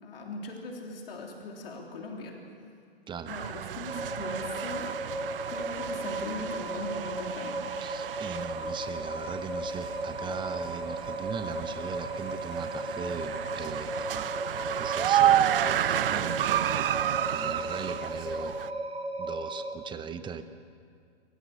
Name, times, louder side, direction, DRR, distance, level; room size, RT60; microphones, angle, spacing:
voice 1, 0.0-2.4 3.3-4.9 5.5-7.6 8.6-8.7, left 2 dB, 65° left, 1 dB, 3.4 m, -40 dB
sound 1, 3.3-18.7, right 11 dB, 60° right, 0.7 m, -31 dB
sound 2, 3.9-19.7, right 1 dB, 85° right, 2.0 m, -35 dB
voice 2, 7.8-17.0 17.3-18.6 19.2-20.4, right 6 dB, 15° right, 10 dB, 0.9 m, -40 dB
25.0 x 15.0 x 7.6 m, 2.2 s
figure-of-eight pair, 115°, 31 cm